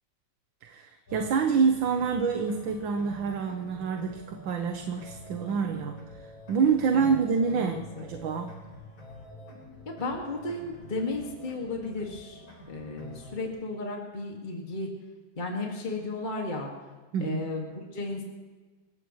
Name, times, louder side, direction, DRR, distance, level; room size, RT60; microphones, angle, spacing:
voice 1, 0.6-6.0 6.5-8.6 17.1-17.5, right 5 dB, 70° right, 5 dB, 1.7 m, -27 dB
sound 1, 1.1-13.5, equal, 75° left, 5.1 m, -48 dB
voice 2, 7.5-8.0 9.9-12.4 12.7-14.9 15.4-16.7 17.2-18.2, left 2 dB, 25° left, 0 dB, 2.1 m, -34 dB
28.0 x 15.5 x 3.2 m, 1.3 s
omnidirectional pair, 2.2 m